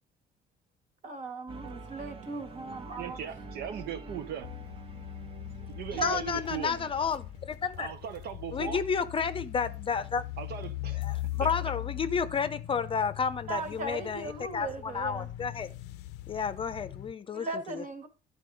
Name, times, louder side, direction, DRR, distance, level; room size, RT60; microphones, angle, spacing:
voice 1, 1.0-3.3 5.9-6.2 13.5-15.3 17.3-18.1, right 3 dB, 50° right, 1.8 m, -38 dB
sound 1, 1.5-9.6, right 3 dB, 35° right, 1.1 m, -47 dB
voice 2, 3.0-4.5 5.7-6.9 7.8-8.8 10.4-11.0, right 9 dB, 70° right, 0.9 m, -38 dB
sound 2, 4.4-17.1, left 15 dB, 85° left, 0.5 m, -40 dB
voice 3, 5.9-7.9 8.5-10.3 11.0-15.7 16.3-17.8, left 6 dB, 30° left, 0.6 m, -31 dB
10.5 x 4.2 x 4.9 m
cardioid pair, 110°, 17 cm